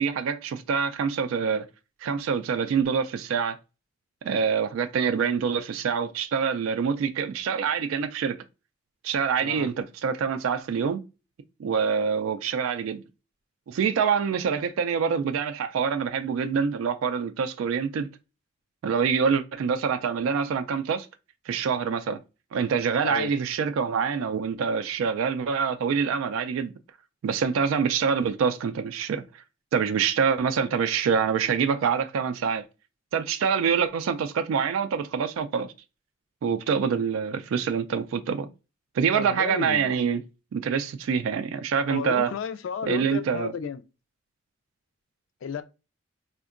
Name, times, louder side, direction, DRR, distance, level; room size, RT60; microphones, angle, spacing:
voice 1, 0.0-1.7 2.0-3.6 4.2-8.4 9.0-11.0 11.6-13.0 13.7-18.1 18.8-21.1 21.5-22.2 22.5-26.7 27.2-29.4 29.7-32.6 33.1-35.7 36.4-38.5 38.9-40.2 40.5-42.3 42.9-43.5, right 6 dB, 85° right, 0.3 m, -26 dB
voice 2, 23.0-23.3 39.1-39.9 41.9-43.8 45.4-45.6, left 6 dB, 75° left, 0.3 m, -33 dB
3.5 x 2.1 x 2.4 m
head